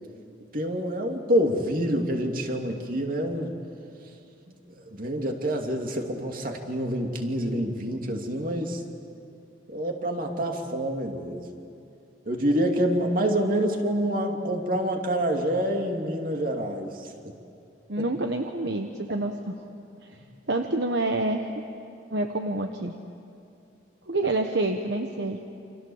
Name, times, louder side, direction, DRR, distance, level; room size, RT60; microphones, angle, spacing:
voice 1, 0.5-3.5 4.5-8.8 9.7-11.4 12.3-17.3, equal, 50° right, 3 dB, 2.7 m, -27 dB
voice 2, 17.9-19.5 20.0-20.2 20.5-21.6 22.1-22.9 24.1-25.4, right 2 dB, 65° right, 5 dB, 1.2 m, -27 dB
29.0 x 26.5 x 7.2 m, 2.6 s
head